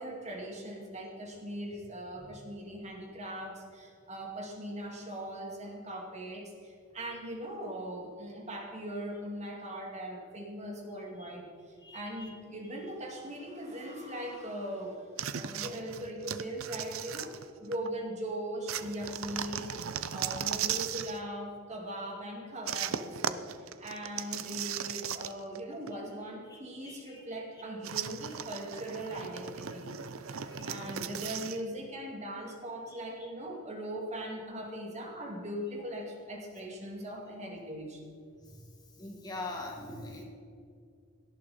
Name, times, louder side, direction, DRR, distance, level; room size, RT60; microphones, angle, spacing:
voice 1, 0.0-17.3 17.6-29.9 30.3-38.0, right 1 dB, 35° right, 0 dB, 2.4 m, -40 dB
voice 2, 11.8-12.3 26.5-27.2 28.7-28.8 30.3-31.2 32.9-33.3 38.4-38.6 39.0-40.2, left 2 dB, 20° left, 0 dB, 2.0 m, -44 dB
sound 1, 15.2-17.9 18.7-21.2 22.7-25.6 25.9-26.0 27.8-31.6, right 8 dB, 85° right, 0.6 m, -37 dB
18.0 x 11.5 x 4.3 m, 2.2 s
head